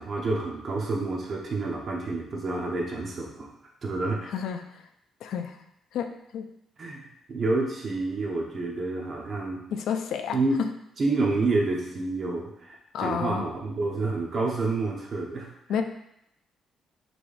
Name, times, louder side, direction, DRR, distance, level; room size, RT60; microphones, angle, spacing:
voice 1, 0.0-3.5 3.8-4.3 6.8-9.6 10.3-10.6 11.0-15.5, right 3 dB, 50° right, -1 dB, 1.1 m, -28 dB
voice 2, 4.2-4.8 5.2-5.6 5.9-6.5 9.7-10.7 12.9-13.5 15.7-15.8, left 7 dB, 80° left, 7 dB, 0.4 m, -31 dB
6.0 x 3.4 x 2.6 m, 0.78 s
cardioid pair, 90°, 0 cm